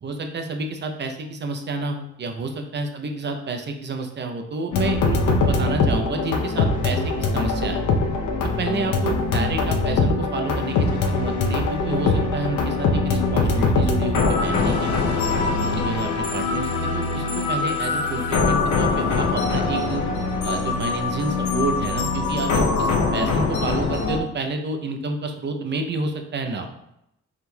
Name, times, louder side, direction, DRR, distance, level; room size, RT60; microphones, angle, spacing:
voice 1, 0.0-7.8 8.6-14.9 15.5-20.0 20.4-26.7, right 3 dB, 35° right, 5 dB, 0.6 m, -29 dB
sound 1, 4.7-24.2, left 3 dB, 70° left, 0.7 m, -22 dB
4.4 x 3.6 x 2.2 m, 0.81 s
cardioid pair, 90°, 30 cm